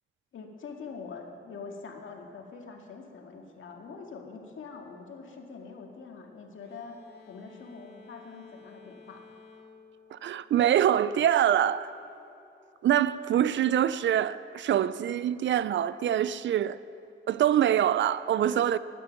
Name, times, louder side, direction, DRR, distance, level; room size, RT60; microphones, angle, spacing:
voice 1, 0.3-7.0 7.3-9.2, left 5 dB, 75° left, 2.0 m, -44 dB
sound 1, 6.6-11.1, left 4 dB, 50° left, 2.1 m, -54 dB
voice 2, 10.1-11.9 12.8-16.8 17.3-18.8, right 10 dB, 65° right, 0.5 m, -25 dB
20.0 x 10.0 x 6.0 m
wide cardioid pair, 135°, 20 cm